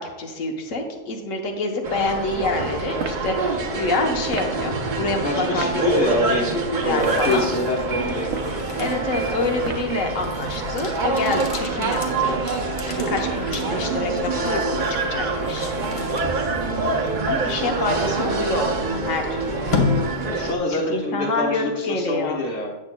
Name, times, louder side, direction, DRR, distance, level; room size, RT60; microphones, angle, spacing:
voice 1, 0.0-7.5 8.8-12.4 12.9-15.7 17.3-19.6 20.7-22.4, left 2 dB, 85° left, 3 dB, 1.4 m, -27 dB
sound 1, 1.8-20.5, right 3 dB, 45° right, 0.7 m, -26 dB
sound 2, 3.0-3.3 4.3-4.6 5.6-5.8 6.9-7.3 8.2-8.6 9.6-10.0, right 5 dB, 65° right, 1.0 m, -31 dB
voice 2, 5.2-8.3 17.6-17.8 20.2-22.7, left 2 dB, 60° left, -2 dB, 1.5 m, -25 dB
sound 3, 6.7-20.8, left 5 dB, 30° left, 0.8 m, -33 dB
8.7 x 7.4 x 2.2 m, 1.2 s
omnidirectional pair, 1.3 m